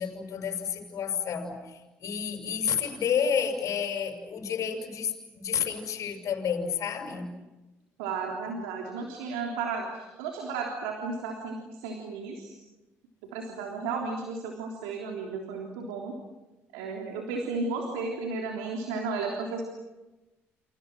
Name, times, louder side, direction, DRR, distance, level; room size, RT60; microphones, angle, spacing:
voice 1, 0.0-7.3, left 7 dB, 60° left, 4 dB, 6.6 m, -30 dB
voice 2, 8.0-12.6 13.2-16.2 16.7-19.6, right 4 dB, 85° right, 1 dB, 3.5 m, -34 dB
29.5 x 29.5 x 6.3 m, 1.1 s
hypercardioid pair, 55°, 6 cm